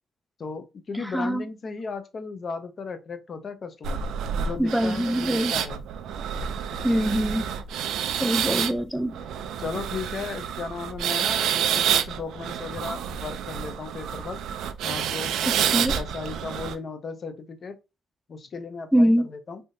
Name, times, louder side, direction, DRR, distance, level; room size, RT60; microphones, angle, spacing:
voice 1, 0.4-4.0 4.4-5.8 9.6-14.4 14.8-17.8 18.3-19.6, left 4 dB, 45° left, 0.6 m, -36 dB
voice 2, 0.9-1.4 4.6-5.5 6.8-7.5 8.2-9.2 15.5-16.0 18.9-19.3, equal, ahead, 0.3 m, -24 dB
sound 1, 3.8-16.7, right 8 dB, 80° right, 0.3 m, -29 dB
3.4 x 2.7 x 2.6 m
cardioid pair, 90°, 0 cm